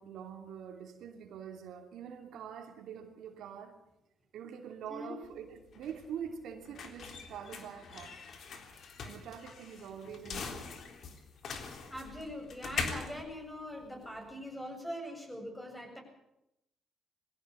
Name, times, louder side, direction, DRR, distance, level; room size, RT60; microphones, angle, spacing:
voice 1, 0.0-3.8 4.3-8.2 9.0-10.7, right 8 dB, 75° right, 4 dB, 2.9 m, -45 dB
sound 1, 5.2-14.3, left 5 dB, 60° left, 3.6 m, -43 dB
voice 2, 11.9-16.0, equal, 10° left, 3 dB, 7.7 m, -42 dB
21.5 x 16.0 x 8.6 m, 0.85 s
cardioid pair, 90°, 0 cm